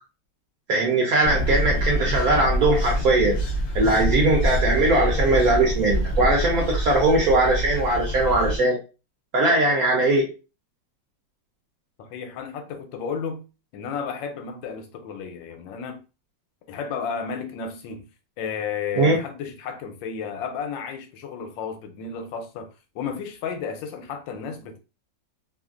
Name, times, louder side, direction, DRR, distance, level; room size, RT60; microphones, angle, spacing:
voice 1, 0.7-3.4 3.7-8.8 9.3-10.3 19.0-19.2, right 2 dB, 65° right, 1.0 m, -20 dB
sound 1, 1.2-8.6, right 1 dB, 60° left, 0.6 m, -26 dB
voice 2, 12.0-13.4 13.7-16.0 16.7-18.1 18.4-22.7 22.9-24.8, left 6 dB, 80° left, 1.3 m, -32 dB
3.1 x 2.4 x 2.4 m
omnidirectional pair, 2.1 m